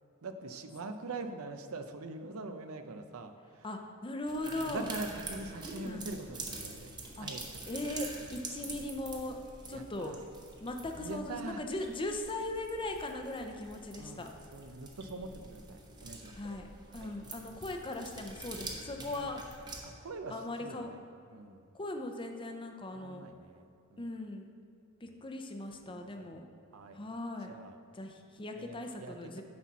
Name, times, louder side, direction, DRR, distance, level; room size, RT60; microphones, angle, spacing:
voice 1, 0.2-3.7 4.6-6.9 7.2-7.6 8.6-8.7 9.7-10.2 10.9-11.6 13.9-16.3 17.0-17.1 19.1-19.4 19.8-21.7 22.9-24.1 25.0-25.2 25.9-26.3 26.7-27.0 27.5-27.8 28.5-29.4, right 2 dB, 75° right, 8 dB, 0.6 m, -44 dB
voice 2, 3.6-4.9 5.8-6.1 7.2-7.3 7.7-9.4 9.7-10.2 10.6-14.3 16.3-16.7 16.9-19.4 20.3-20.9 21.7-23.2 24.0-24.5 25.0-26.4 26.9-27.5 28.0-29.4, left 2 dB, 25° left, 4 dB, 0.6 m, -39 dB
sound 1, 4.3-19.8, right 2 dB, 20° right, 0.9 m, -46 dB
9.6 x 4.2 x 6.1 m, 2.5 s
head